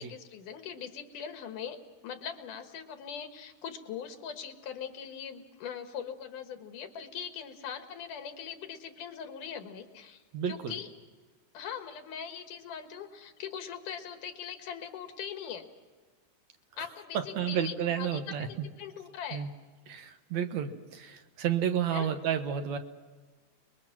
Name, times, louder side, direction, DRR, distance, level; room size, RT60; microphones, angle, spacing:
voice 1, 0.0-10.9 11.5-15.7 16.8-18.2 18.8-19.5 21.9-22.1, left 8 dB, 85° left, 6 dB, 3.2 m, -41 dB
voice 2, 10.3-10.7 16.8-16.9 17.1-18.7 19.3-19.5 19.9-22.8, right 9 dB, 65° right, 7 dB, 2.3 m, -31 dB
29.5 x 22.0 x 6.0 m, 1.4 s
omnidirectional pair, 3.6 m